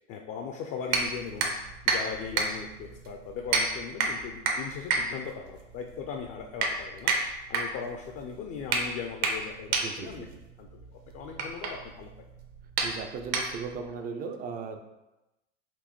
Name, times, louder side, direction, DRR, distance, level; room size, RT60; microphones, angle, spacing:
voice 1, 0.1-1.5 1.9-7.1 7.5-10.3 10.6-10.9 11.1-12.1, left 6 dB, 40° left, 3 dB, 0.4 m, -38 dB
sound 1, 0.9-13.9, right 4 dB, 60° right, 0.8 m, -31 dB
voice 2, 9.8-10.3 12.8-14.8, right 5 dB, 25° right, 6 dB, 0.4 m, -37 dB
4.3 x 2.7 x 3.0 m, 0.98 s
hypercardioid pair, 95°, 38 cm